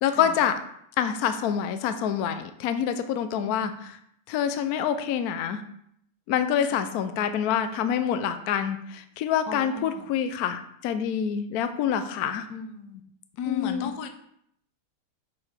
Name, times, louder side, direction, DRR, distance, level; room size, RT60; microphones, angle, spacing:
voice 1, 0.0-0.5 1.0-4.0 4.3-5.6 6.3-12.4 13.4-14.0, left 8 dB, 90° left, 9 dB, 0.8 m, -26 dB
voice 2, 3.2-3.7 6.7-6.8 9.5-10.0 12.5-13.0 13.4-14.1, left 6 dB, 65° left, 7 dB, 1.1 m, -35 dB
6.7 x 5.0 x 5.1 m, 0.71 s
omnidirectional pair, 2.4 m